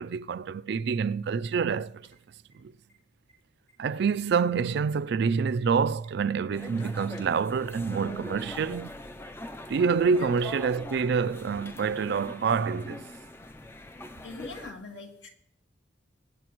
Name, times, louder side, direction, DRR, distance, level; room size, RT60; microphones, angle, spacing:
voice 1, 0.0-2.0 2.5-2.7 3.8-9.0 9.7-13.0, right 5 dB, 60° right, 0.3 m, -27 dB
sound 1, 1.9-2.9 3.3-3.4 3.7-4.1 4.5-6.1 6.4-7.3 7.7-7.8 8.1-8.2 8.4-8.5 8.8-8.9 9.2-9.3 9.6-9.7 10.0-10.1 10.4-11.4, equal, 40° left, 2.9 m, -58 dB
sound 2, 6.5-14.7, left 1 dB, 15° left, 0.4 m, -42 dB
voice 2, 10.1-10.4 14.2-15.3, left 3 dB, 70° left, 1.8 m, -42 dB
23.5 x 8.5 x 3.0 m
head